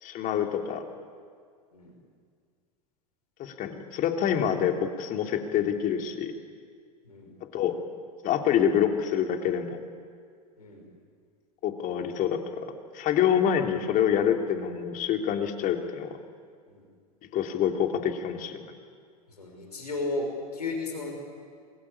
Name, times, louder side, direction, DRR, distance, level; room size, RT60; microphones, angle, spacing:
voice 1, 0.0-0.8 3.4-6.3 7.5-7.8 8.2-9.8 11.6-12.7 12.9-16.2 17.3-18.6, left 9 dB, 45° left, 4 dB, 3.2 m, -26 dB
voice 2, 19.4-21.2, left 2 dB, 85° left, 2 dB, 6.1 m, -34 dB
27.5 x 22.0 x 8.7 m, 2.1 s
hypercardioid pair, 85°, 20 cm